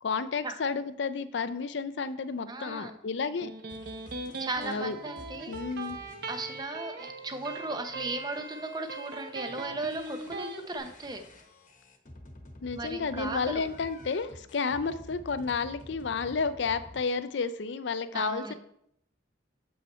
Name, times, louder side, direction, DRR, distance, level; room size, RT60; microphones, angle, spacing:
voice 1, 0.0-3.5 4.6-5.0 5.5-6.0 12.6-18.5, left 5 dB, 65° left, 12 dB, 0.5 m, -31 dB
voice 2, 2.5-3.0 4.4-5.6 6.3-11.2 12.8-13.6 18.1-18.5, right 2 dB, 20° right, 7 dB, 0.7 m, -36 dB
Electric guitar, 3.2-10.6, right 3 dB, 60° right, 0.8 m, -40 dB
sound 1, 3.7-6.6 7.0-17.0, left 1 dB, 45° left, 1.1 m, -51 dB
7.5 x 5.5 x 4.3 m, 0.72 s
head